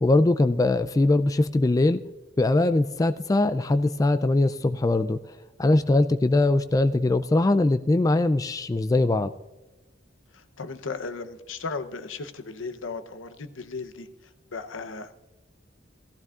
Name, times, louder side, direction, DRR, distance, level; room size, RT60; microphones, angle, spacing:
voice 1, 0.0-2.0 2.4-5.2 5.6-9.3, left 2 dB, 20° left, 11 dB, 0.3 m, -21 dB
voice 2, 10.3-14.1 14.5-15.2, left 4 dB, 85° left, 9 dB, 0.8 m, -36 dB
17.0 x 15.0 x 2.4 m, 1.1 s
head